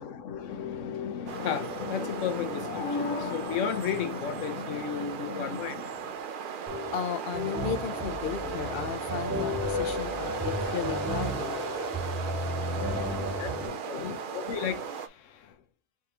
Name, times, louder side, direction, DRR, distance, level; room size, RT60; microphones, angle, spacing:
voice 1, 0.0-6.1 12.7-15.5, left 7 dB, 80° left, 1.1 m, -33 dB
sound 1, 1.3-15.1, right 6 dB, 55° right, 0.6 m, -36 dB
sound 2, 6.7-13.7, left 1 dB, 15° right, 1.5 m, -33 dB
voice 2, 6.9-11.6, left 8 dB, 60° left, 0.7 m, -35 dB
4.7 x 3.6 x 2.8 m
omnidirectional pair, 1.3 m